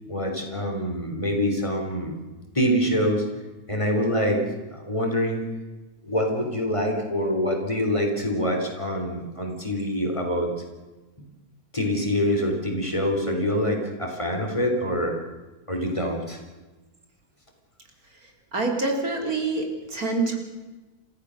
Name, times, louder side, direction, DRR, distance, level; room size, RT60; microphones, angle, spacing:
voice 1, 0.1-2.1 2.6-3.2 3.7-4.4 4.7-5.4 6.1-10.5 11.7-15.2 15.7-16.4, equal, 20° left, 2 dB, 3.6 m, -25 dB
voice 2, 18.2-20.4, right 3 dB, 75° right, 3 dB, 3.7 m, -26 dB
28.5 x 15.0 x 6.5 m, 1.2 s
omnidirectional pair, 1.5 m